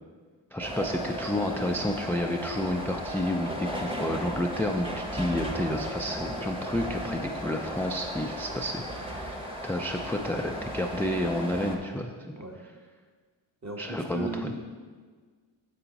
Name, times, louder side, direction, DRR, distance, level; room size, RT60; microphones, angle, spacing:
voice 1, 0.5-12.1 13.8-14.5, left 1 dB, 5° left, 3 dB, 0.4 m, -30 dB
sound 1, 0.6-11.8, equal, 10° right, 1.1 m, -35 dB
voice 2, 13.6-14.6, right 2 dB, 35° right, 0 dB, 1.4 m, -36 dB
6.7 x 5.8 x 4.0 m, 1.5 s
cardioid pair, 60°, 47 cm